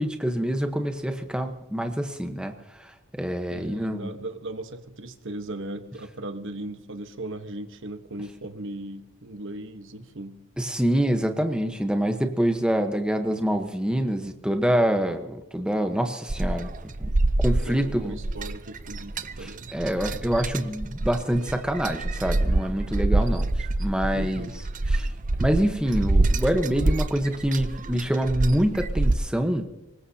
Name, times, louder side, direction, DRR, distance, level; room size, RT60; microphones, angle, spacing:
voice 1, 0.0-2.5 2.8-4.1 10.6-16.7 17.0-17.1 17.4-18.2 19.4-23.5 23.8-24.5 24.9-25.1 25.4-29.7, equal, 5° right, 5 dB, 1.1 m, -26 dB
voice 2, 3.5-10.4 17.5-19.7 24.0-24.6, right 2 dB, 60° right, 8 dB, 1.2 m, -37 dB
sound 1, 16.3-29.1, right 2 dB, 35° right, 0.6 m, -26 dB
24.5 x 20.0 x 2.9 m, 0.97 s
head